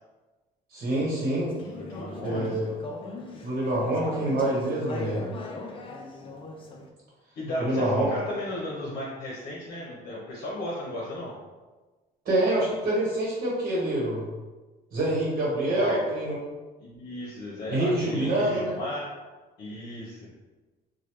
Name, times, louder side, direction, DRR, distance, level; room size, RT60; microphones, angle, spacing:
voice 1, 0.7-1.5 2.2-2.6 3.4-5.3 7.6-8.1 12.2-14.2 14.9-16.4 17.7-18.7, right 1 dB, 55° right, -6 dB, 1.1 m, -26 dB
Conversation / Chatter, 1.5-6.9, left 2 dB, 30° left, 0.5 m, -39 dB
voice 2, 1.6-2.5 7.4-11.3 15.7-16.0 16.8-19.1 19.6-20.2, left 1 dB, 65° left, -5 dB, 0.8 m, -34 dB
3.2 x 2.3 x 3.0 m, 1.2 s
cardioid pair, 110°, 17 cm